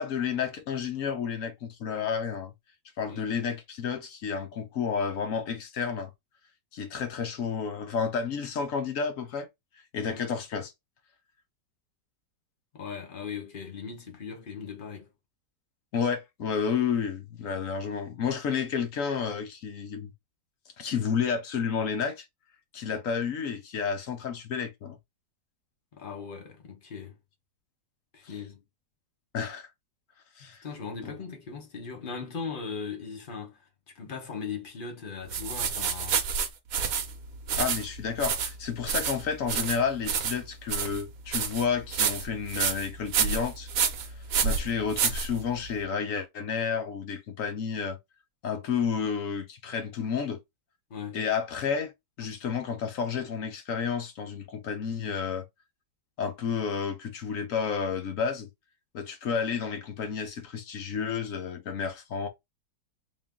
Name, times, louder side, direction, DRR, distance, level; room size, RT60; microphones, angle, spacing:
voice 1, 0.0-2.5 3.0-6.1 6.7-9.5 9.9-10.7 15.9-20.1 20.8-22.3 22.7-25.0 29.3-29.7 30.4-30.6 31.0-31.1 37.6-43.7 44.2-48.0 48.4-50.4 51.1-51.9 52.2-55.5 56.2-58.5 58.9-62.3, left 6 dB, 60° left, 1.0 m, -31 dB
voice 2, 12.7-15.1 25.9-27.2 28.1-28.6 30.4-36.2 50.9-51.2, left 5 dB, 35° left, 1.0 m, -39 dB
sound 1, 35.3-45.8, right 7 dB, 60° right, 1.1 m, -29 dB
3.7 x 2.6 x 3.5 m
omnidirectional pair, 1.9 m